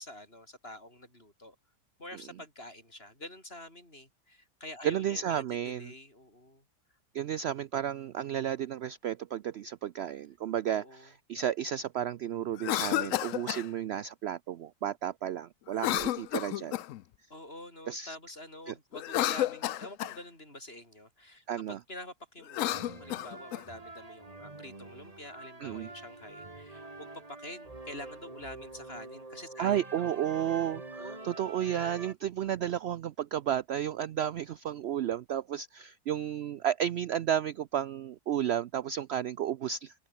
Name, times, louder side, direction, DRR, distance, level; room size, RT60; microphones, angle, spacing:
voice 1, 0.0-1.6 2.0-6.6 10.7-11.1 17.3-30.1 31.0-31.4, left 1 dB, 35° left, 8.1 m, -47 dB
voice 2, 4.8-5.9 7.1-16.7 17.9-18.2 18.7-18.8 21.5-21.8 25.6-25.9 29.6-39.9, right 10 dB, 75° right, 0.6 m, -32 dB
Cough, 12.5-13.7 15.7-17.0 18.9-20.2 22.4-23.6, left 14 dB, 65° left, 0.9 m, -31 dB
sound 1, 22.7-32.1, right 2 dB, 25° right, 2.2 m, -46 dB
omnidirectional pair, 1.7 m